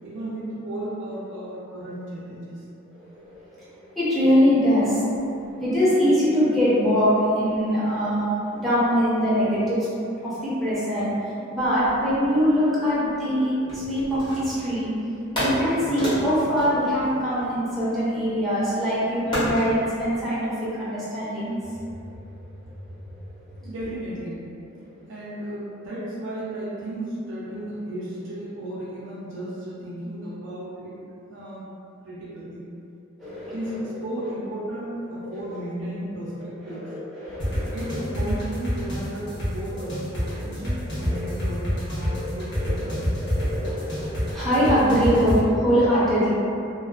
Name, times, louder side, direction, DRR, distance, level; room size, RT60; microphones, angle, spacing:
voice 1, 0.0-2.6 23.6-24.4 25.1-31.0 31.3-31.7 32.0-32.6 33.5-36.9 37.7-42.9, right 1 dB, 60° right, -6 dB, 0.5 m, -34 dB
voice 2, 2.9-9.9 10.2-21.6 23.5-23.6 33.2-33.9 35.2-35.6 36.4-38.0 39.7-39.9 40.7-41.3 42.0-46.3, equal, ahead, -12 dB, 0.7 m, -23 dB
sound 1, 13.7-14.8 15.3-17.8 19.3-19.7, equal, 20° left, 0.9 m, -29 dB
sound 2, 37.4-45.4, equal, 60° left, 0.9 m, -26 dB
2.4 x 2.2 x 2.3 m, 2.6 s
head